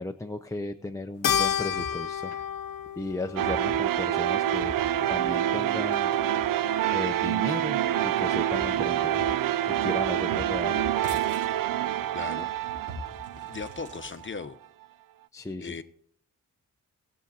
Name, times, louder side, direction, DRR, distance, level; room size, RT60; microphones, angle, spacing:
voice 1, 0.0-2.3 3.0-4.7 5.1-6.1 6.9-9.2 9.6-10.8 15.3-15.7, left 2 dB, 10° left, 0.5 m, -35 dB
sound 1, 1.1-14.3, right 1 dB, 60° right, 4.8 m, -46 dB
Keyboard (musical), 1.2-5.8, left 9 dB, 80° left, 0.7 m, -32 dB
sound 2, 3.4-14.3, right 11 dB, 80° right, 0.5 m, -27 dB
voice 2, 12.1-12.5 13.4-14.6 15.6-15.8, left 5 dB, 35° left, 0.9 m, -37 dB
18.5 x 7.3 x 4.1 m
wide cardioid pair, 110°, 33 cm